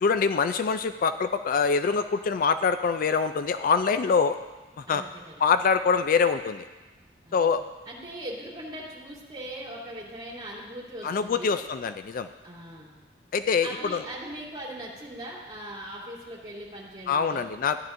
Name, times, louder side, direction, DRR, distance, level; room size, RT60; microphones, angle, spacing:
voice 1, 0.0-4.4 4.8-5.0 5.4-6.6 7.3-7.6 11.0-12.3 13.3-14.0 17.1-17.8, left 5 dB, 45° left, 10 dB, 0.3 m, -24 dB
voice 2, 4.9-5.5 7.2-7.5 7.9-11.6 12.4-12.9 13.6-17.5, right 1 dB, 25° right, -6 dB, 2.9 m, -40 dB
14.5 x 10.5 x 2.6 m, 1.2 s
head